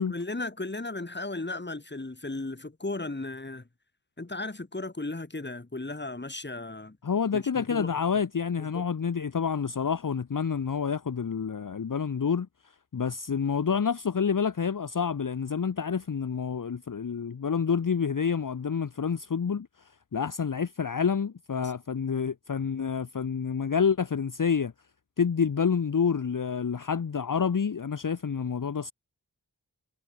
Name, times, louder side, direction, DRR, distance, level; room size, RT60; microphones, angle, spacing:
voice 1, 0.1-3.7 4.2-7.0 7.3-7.9 8.7-8.8 21.5-21.7, left 2 dB, 25° left, 1.5 m, -35 dB
voice 2, 7.0-12.5 12.9-19.7 20.1-24.7 25.2-28.9, left 6 dB, 55° left, 0.7 m, -28 dB
wide cardioid pair, 45°, 40 cm